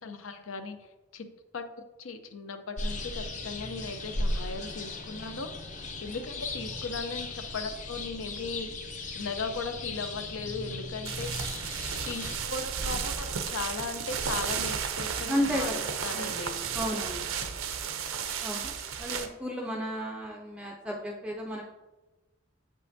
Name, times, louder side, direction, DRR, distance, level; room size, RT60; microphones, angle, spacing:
voice 1, 0.0-0.9 1.1-1.3 1.5-1.6 2.0-5.5 6.0-8.7 9.1-11.3 12.0-16.6, left 4 dB, 80° left, 8 dB, 0.6 m, -37 dB
sound 1, 2.8-12.4, left 2 dB, 35° left, 0.6 m, -37 dB
sound 2, 11.1-19.3, right 7 dB, 85° right, 0.6 m, -33 dB
voice 2, 15.3-16.3 16.7-17.3 18.4-21.6, equal, 5° right, -2 dB, 0.4 m, -33 dB
7.5 x 5.5 x 2.6 m, 1.1 s
head